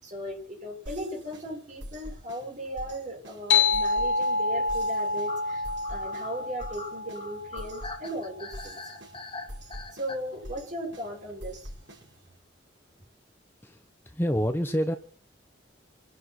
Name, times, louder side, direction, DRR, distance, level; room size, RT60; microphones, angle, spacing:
voice 1, 0.0-8.8 9.9-11.7, equal, 40° right, 0 dB, 7.0 m, -37 dB
sound 1, 0.8-12.4, equal, 75° right, 6.5 m, -45 dB
sound 2, 1.2-1.3 1.5-1.6 1.9-2.0 2.9-3.2 5.3-10.2, left 3 dB, 25° left, 1.8 m, -43 dB
sound 3, 3.5-8.5, left 4 dB, 80° left, 1.2 m, -28 dB
voice 2, 13.6-14.9, equal, 10° left, 7 dB, 1.0 m, -28 dB
27.5 x 11.5 x 4.6 m, 0.41 s
head